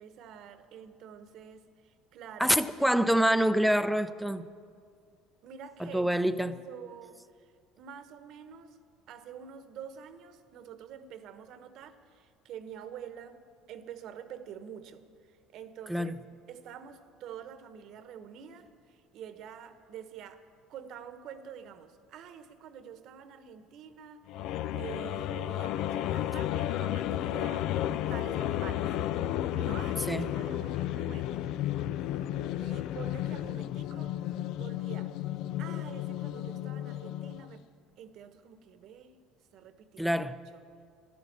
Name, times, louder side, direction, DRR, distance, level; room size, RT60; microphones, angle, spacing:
voice 1, 0.0-2.9 5.4-6.1 6.4-8.8 9.1-15.0 15.3-16.2 16.5-27.8 28.1-29.0 29.5-31.4 32.6-34.2 34.6-35.1 35.6-37.7 38.0-39.2 39.5-40.1 40.5-40.8, right 8 dB, 60° right, 1.1 m, -47 dB
voice 2, 2.4-4.5 5.8-6.5 15.9-16.1 30.1-30.3 40.0-40.4, equal, ahead, 0.6 m, -26 dB
sound 1, 24.3-37.5, left 12 dB, 70° left, 0.4 m, -33 dB
12.0 x 11.5 x 8.7 m
supercardioid pair, 90°, 0 cm